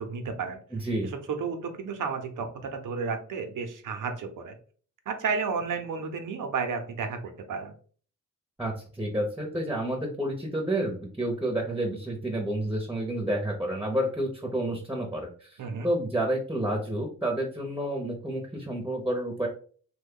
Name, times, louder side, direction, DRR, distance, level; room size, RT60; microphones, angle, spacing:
voice 1, 0.0-0.6 1.3-4.5 5.1-7.7 15.6-15.9, right 5 dB, 85° right, 6 dB, 0.7 m, -32 dB
voice 2, 0.7-1.1 8.6-19.5, right 1 dB, 5° right, 0 dB, 0.6 m, -30 dB
3.0 x 2.2 x 3.6 m, 0.44 s
wide cardioid pair, 100°, 31 cm